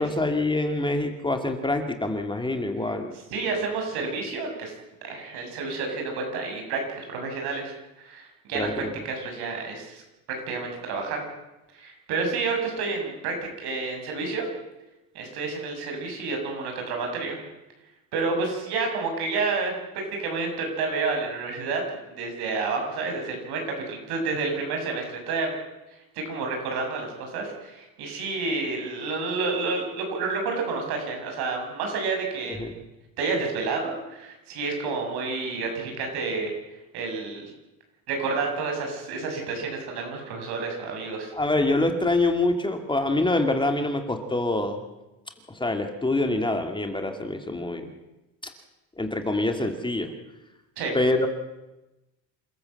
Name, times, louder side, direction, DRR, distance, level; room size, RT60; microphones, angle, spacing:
voice 1, 0.0-3.1 8.5-8.9 32.6-32.7 41.3-44.8 45.5-47.9 49.0-50.1 50.9-51.3, left 2 dB, 10° left, 5 dB, 2.5 m, -25 dB
voice 2, 3.3-4.7 5.0-10.0 10.5-11.3 11.7-14.5 15.1-17.4 18.1-19.8 20.1-21.8 22.1-25.5 26.2-32.7 33.2-36.5 36.9-37.5 38.1-41.3 50.8-50.9, right 4 dB, 70° right, 2 dB, 7.1 m, -29 dB
27.5 x 13.5 x 7.9 m, 1.0 s
supercardioid pair, 95°, 39 cm